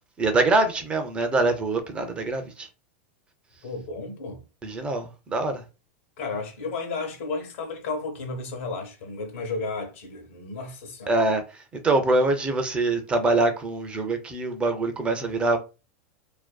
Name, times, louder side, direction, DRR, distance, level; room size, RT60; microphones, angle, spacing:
voice 1, 0.2-2.7 4.6-5.6 11.1-11.4 11.8-15.6, right 2 dB, 15° right, 0.3 m, -24 dB
voice 2, 3.6-4.4 6.2-11.1, left 3 dB, 70° left, 0.8 m, -33 dB
2.5 x 2.2 x 2.2 m
supercardioid pair, 150°, 7 cm